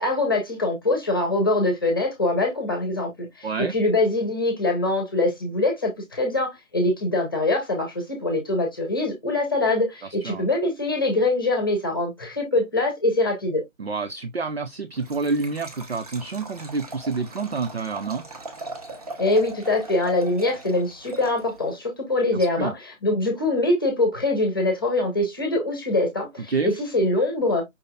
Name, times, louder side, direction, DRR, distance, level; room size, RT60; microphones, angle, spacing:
voice 1, 0.0-13.6 19.2-27.6, left 2 dB, 15° left, 1.0 m, -23 dB
voice 2, 3.4-3.7 10.2-10.5 13.8-18.2 22.3-22.7 26.5-26.7, right 4 dB, 55° right, 0.6 m, -28 dB
Liquid, 14.9-21.8, right 2 dB, 30° right, 1.1 m, -40 dB
5.5 x 3.7 x 2.3 m
figure-of-eight pair, 155°, 39 cm